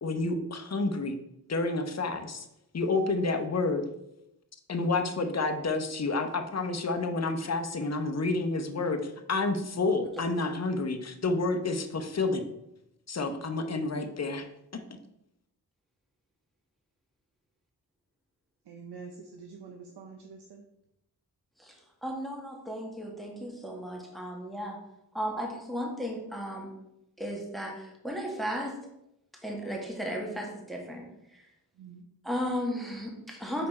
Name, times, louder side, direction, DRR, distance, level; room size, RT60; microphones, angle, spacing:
voice 1, 0.0-1.2 1.5-2.4 2.7-3.9 4.7-12.5 13.1-14.5 14.7-14.8, left 3 dB, 40° left, 7 dB, 0.8 m, -29 dB
voice 2, 18.6-20.6 31.8-32.1, right 5 dB, 85° right, 3 dB, 0.7 m, -46 dB
voice 3, 21.6-24.8 25.1-26.7 27.2-28.8 29.4-31.0 31.3-31.4 32.2-33.7, equal, ahead, 0 dB, 1.5 m, -35 dB
5.5 x 4.2 x 4.3 m, 0.85 s
cardioid pair, 60°, 39 cm